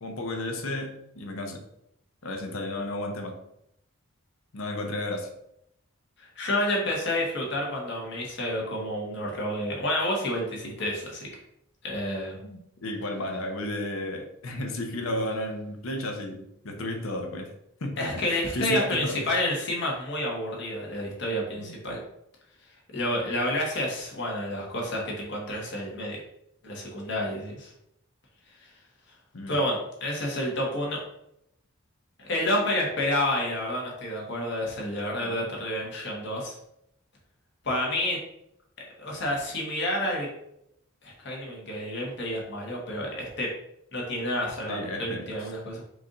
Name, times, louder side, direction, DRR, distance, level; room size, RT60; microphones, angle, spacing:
voice 1, 0.0-1.6 2.2-3.4 4.5-5.3 12.4-17.5 17.8-19.2 21.6-21.7 29.3-29.6 35.2-35.4 44.7-45.5, left 1 dB, 75° left, 3 dB, 0.8 m, -33 dB
voice 2, 6.2-11.3 11.8-12.4 18.0-22.0 22.9-26.2 26.6-27.7 28.6-28.7 29.5-31.0 32.2-36.5 37.6-38.2 39.0-40.3 41.0-43.5 43.9-45.8, left 1 dB, 55° left, -2 dB, 1.4 m, -29 dB
4.8 x 2.7 x 3.7 m, 0.77 s
head